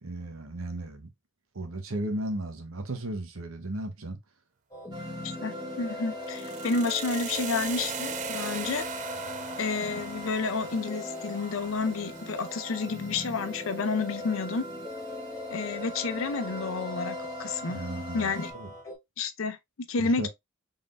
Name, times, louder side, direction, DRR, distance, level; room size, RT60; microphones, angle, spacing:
voice 1, 0.0-1.1 1.5-4.2 17.7-18.7 20.0-20.3, right 1 dB, 75° right, 1.0 m, -35 dB
sound 1, 4.7-19.0, left 2 dB, 15° left, 1.4 m, -41 dB
sound 2, 4.9-18.5, equal, 20° right, 0.8 m, -41 dB
voice 2, 5.2-8.9 9.6-14.7 15.5-17.8 18.1-18.5 19.2-19.6 19.9-20.3, left 4 dB, 70° left, 0.6 m, -30 dB
sound 3, 6.2-14.3, right 8 dB, 35° right, 0.3 m, -41 dB
4.0 x 3.5 x 2.5 m
head